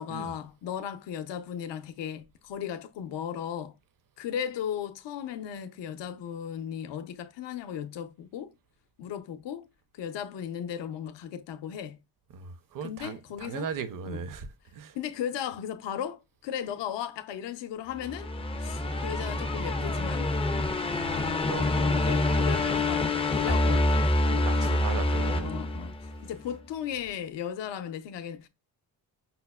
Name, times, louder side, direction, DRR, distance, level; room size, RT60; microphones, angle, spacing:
voice 1, 0.0-3.8 4.2-8.5 9.0-9.7 9.9-12.0 12.8-13.7 14.1-14.2 14.9-18.3 18.6-20.3 21.6-24.1 25.4-28.5, left 9 dB, 70° left, 0.6 m, -36 dB
voice 2, 12.3-15.0 20.9-21.7 23.5-23.6 24.3-25.7, right 6 dB, 45° right, 0.6 m, -38 dB
sound 1, 18.0-26.3, left 2 dB, 15° left, 0.3 m, -27 dB
5.5 x 2.0 x 2.2 m
cardioid pair, 70°, 45 cm